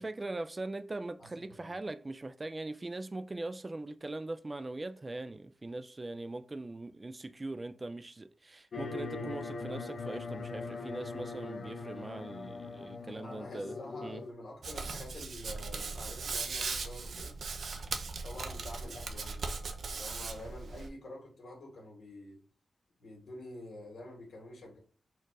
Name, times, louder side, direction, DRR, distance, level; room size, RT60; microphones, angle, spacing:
voice 1, 0.0-14.2, right 2 dB, 25° right, 0.3 m, -41 dB
voice 2, 1.2-1.7 13.2-17.4 18.2-19.4 19.9-22.4 23.0-24.8, left 1 dB, 85° left, 1.9 m, -48 dB
sound 1, 8.7-14.3, left 3 dB, 60° left, 0.6 m, -41 dB
Hands, 14.6-20.9, right 4 dB, 70° right, 0.6 m, -38 dB
4.4 x 2.4 x 4.7 m
wide cardioid pair, 120°, 0 cm